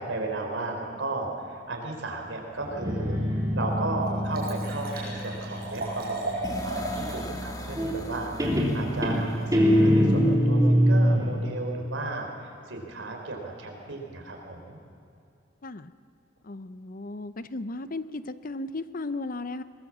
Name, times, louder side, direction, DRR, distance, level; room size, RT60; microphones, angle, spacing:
voice 1, 0.0-10.6 10.9-14.8, right 2 dB, 90° right, 2 dB, 4.1 m, -34 dB
Guitar, 2.6-6.2 7.8-8.1 8.4-11.3, equal, 20° right, 3.2 m, -23 dB
Liquid, 3.2-3.3 3.7-7.2 7.6-7.7, right 2 dB, 50° right, 7.1 m, -35 dB
sound 1, 6.4-10.3, equal, 20° left, 1.5 m, -39 dB
voice 2, 16.5-19.6, left 2 dB, 45° left, 13 dB, 0.7 m, -35 dB
22.0 x 20.5 x 7.4 m, 2.5 s
head